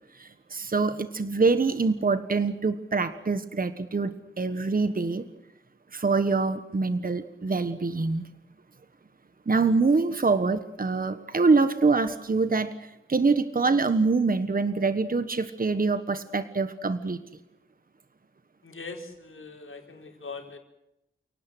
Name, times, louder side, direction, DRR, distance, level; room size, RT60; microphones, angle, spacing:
voice 1, 0.1-5.2 5.9-8.2 9.5-17.2, right 4 dB, 45° right, 11 dB, 1.4 m, -25 dB
voice 2, 18.6-20.6, left 4 dB, 75° left, 2 dB, 4.9 m, -41 dB
29.5 x 18.5 x 8.1 m, 0.85 s
wide cardioid pair, 100°, 21 cm